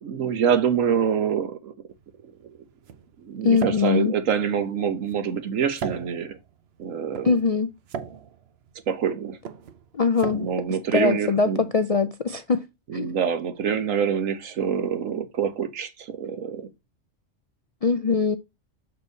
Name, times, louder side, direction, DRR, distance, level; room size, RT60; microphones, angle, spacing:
voice 1, 0.0-1.7 3.2-6.4 6.8-7.4 8.9-9.4 10.2-11.6 12.9-16.7, right 7 dB, 90° right, 1.3 m, -26 dB
sound 1, 1.9-11.7, right 7 dB, 60° right, 0.9 m, -40 dB
voice 2, 3.4-4.1 7.2-7.7 9.9-10.5 10.9-12.6 12.9-13.1 17.8-18.4, left 5 dB, 65° left, 0.3 m, -22 dB
6.8 x 4.4 x 4.0 m
omnidirectional pair, 1.3 m